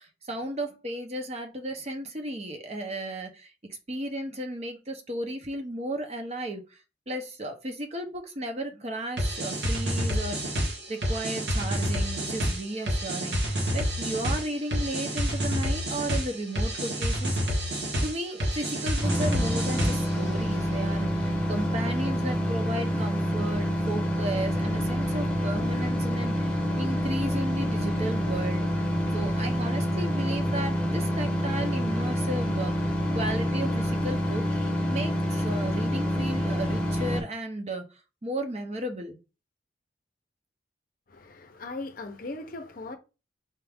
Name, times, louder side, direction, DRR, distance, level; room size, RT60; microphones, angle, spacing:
voice 1, 0.0-3.5 3.9-6.8 7.1-17.6 18.0-28.7 29.1-34.4 34.9-37.8 38.2-39.2, right 1 dB, 35° right, 0.7 m, -34 dB
sound 1, 9.2-20.2, equal, 65° right, 1.3 m, -28 dB
sound 2, 19.0-37.2, equal, 5° left, 0.9 m, -27 dB
voice 2, 41.1-43.0, left 2 dB, 50° left, 0.6 m, -38 dB
4.3 x 2.4 x 3.4 m
head